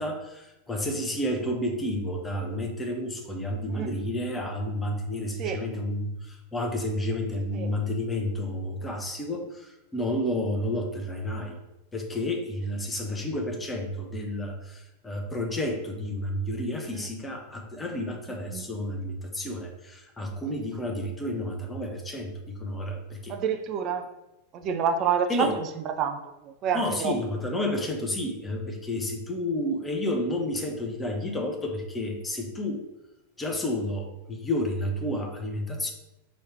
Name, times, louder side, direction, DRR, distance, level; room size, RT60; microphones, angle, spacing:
voice 1, 0.0-11.6 11.9-23.4 25.3-25.6 26.7-32.8 33.4-35.9, left 1 dB, 15° left, 2 dB, 0.8 m, -31 dB
voice 2, 23.3-24.1 24.5-25.7 26.0-26.2 26.6-27.1, right 7 dB, 35° right, 8 dB, 0.4 m, -27 dB
4.6 x 3.0 x 3.4 m, 0.92 s
figure-of-eight pair, 90°, 0 cm